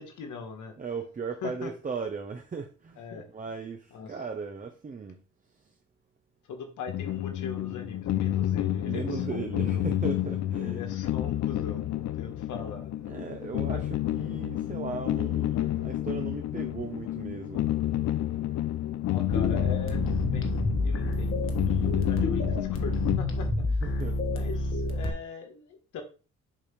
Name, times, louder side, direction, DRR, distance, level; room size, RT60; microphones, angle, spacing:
voice 1, 0.0-0.7 1.4-1.7 3.0-3.3 3.9-4.1 6.4-9.9 10.6-13.1 13.7-13.8 19.1-23.8 24.3-26.0, left 5 dB, 80° left, 1.5 m, -41 dB
voice 2, 0.8-3.0 3.3-5.2 5.6-5.7 8.8-10.9 13.1-17.7 23.8-24.2, right 5 dB, 25° right, 0.8 m, -37 dB
sound 1, 6.9-23.2, left 13 dB, 60° left, 0.6 m, -30 dB
sound 2, 19.3-25.1, left 2 dB, 45° left, 1.3 m, -29 dB
7.3 x 2.8 x 5.2 m
cardioid pair, 90°, 30 cm